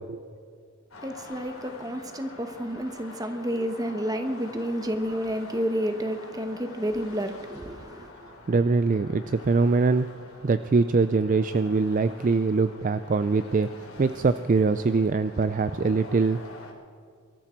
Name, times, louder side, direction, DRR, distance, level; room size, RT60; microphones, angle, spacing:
sound 1, 0.9-16.7, left 2 dB, 70° left, 3.5 m, -46 dB
voice 1, 1.0-8.1, equal, 15° right, 1.1 m, -30 dB
voice 2, 8.5-10.1 10.4-13.7 14.0-16.4, right 4 dB, 35° right, 0.3 m, -23 dB
23.0 x 13.5 x 4.5 m
head